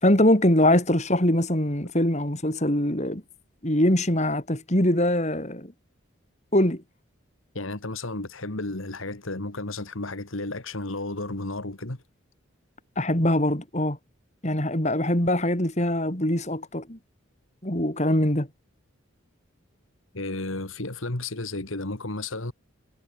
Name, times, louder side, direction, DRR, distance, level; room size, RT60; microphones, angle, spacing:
voice 1, 0.0-3.2 3.6-5.7 6.5-6.8 13.0-14.0 14.4-17.0 17.6-18.5, left 1 dB, 35° left, 3.8 m, -23 dB
voice 2, 7.5-12.0 20.1-22.5, left 2 dB, 80° left, 2.3 m, -33 dB
head